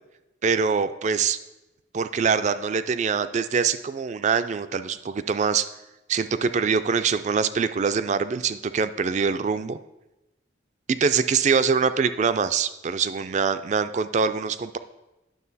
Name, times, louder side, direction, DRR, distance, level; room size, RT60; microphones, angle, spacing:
voice 1, 0.4-1.4 1.9-5.7 6.1-9.8 10.9-14.8, right 5 dB, 40° right, 12 dB, 0.3 m, -24 dB
9.5 x 6.2 x 4.1 m, 0.98 s
head